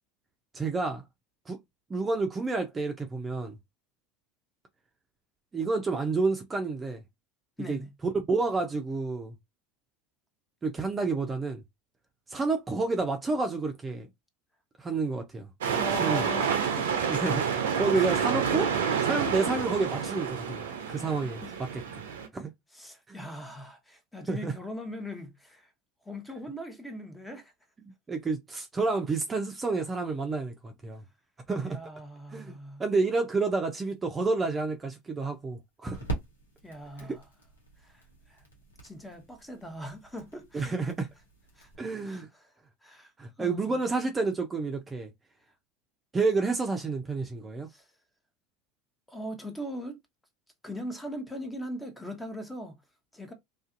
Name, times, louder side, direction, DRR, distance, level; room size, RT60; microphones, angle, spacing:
voice 1, 0.5-1.0 1.5-1.6 1.9-3.6 5.5-7.0 7.7-7.8 8.1-9.3 10.6-11.6 12.3-14.1 14.8-15.5 16.0-16.3 17.1-21.4 21.7-21.8 22.3-22.5 23.1-23.2 24.3-24.5 28.1-31.0 31.5-31.8 32.3-36.1 37.0-37.1 40.5-41.1 41.8-42.3 43.2-45.1 46.1-47.7, right 3 dB, 25° right, 0.6 m, -29 dB
voice 2, 7.6-7.9 15.7-17.0 17.9-18.1 21.4-21.5 22.7-25.7 26.0-27.5 31.6-32.8 36.6-37.2 37.8-38.4 38.8-40.8 41.6-41.7 42.0-42.5 42.8-43.1 43.4-43.8 47.7-47.9 49.1-50.0 50.6-52.8 53.1-53.3, equal, 10° left, 0.9 m, -40 dB
sound 1, 15.6-22.3, right 7 dB, 75° right, 0.5 m, -29 dB
sound 2, 33.8-41.8, right 3 dB, 85° left, 0.9 m, -43 dB
2.5 x 2.4 x 2.5 m
hypercardioid pair, 75°, 0 cm